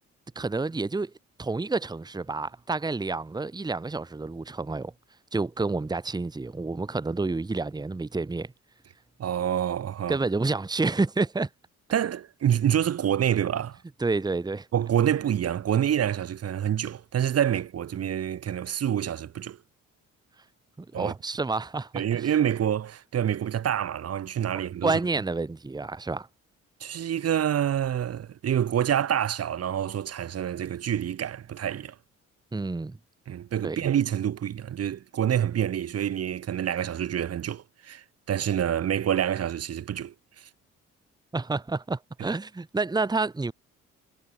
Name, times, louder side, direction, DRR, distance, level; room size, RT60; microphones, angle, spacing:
voice 1, 0.3-1.1 1.4-4.9 5.3-8.5 10.1-11.5 14.0-14.7 20.8-22.3 24.8-26.3 32.5-33.0 33.6-33.9 41.3-43.5, right 3 dB, 15° right, 1.1 m, -29 dB
voice 2, 9.2-10.2 11.9-13.8 14.7-19.6 20.9-21.1 21.9-25.0 26.8-31.9 33.3-40.5 42.2-42.3, right 10 dB, 55° right, 1.2 m, -27 dB
cardioid pair, 90°, 30 cm